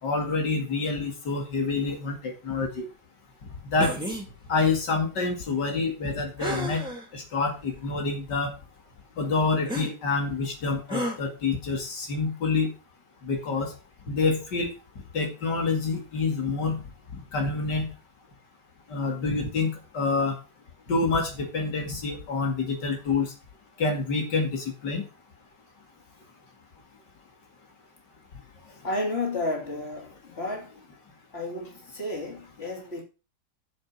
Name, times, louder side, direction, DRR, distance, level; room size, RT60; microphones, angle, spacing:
voice 1, 0.0-2.9 3.4-4.0 4.5-6.8 7.1-8.6 9.2-12.7 13.2-13.7 14.1-14.7 15.1-17.9 18.9-20.4 20.9-23.3 23.8-25.1 28.6-28.8, left 4 dB, 90° left, 2.9 m, -27 dB
sound 1, 3.8-4.3 6.4-7.0 7.7-7.8 9.7-9.9 10.9-11.2, equal, 5° right, 2.6 m, -31 dB
voice 2, 28.8-30.7 31.3-33.0, left 2 dB, 35° left, 3.2 m, -32 dB
7.7 x 7.5 x 6.1 m
omnidirectional pair, 1.8 m